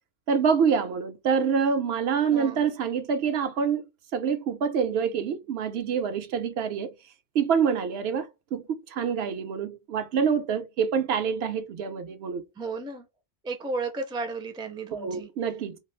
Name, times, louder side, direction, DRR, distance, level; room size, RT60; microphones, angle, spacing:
voice 1, 0.3-3.9 4.1-6.9 7.3-8.6 8.9-12.4 14.9-15.8, right 6 dB, 80° right, 0.8 m, -26 dB
voice 2, 2.3-2.7 12.6-13.1 13.4-15.3, right 3 dB, 10° right, 0.3 m, -34 dB
2.4 x 2.4 x 3.2 m
omnidirectional pair, 1.1 m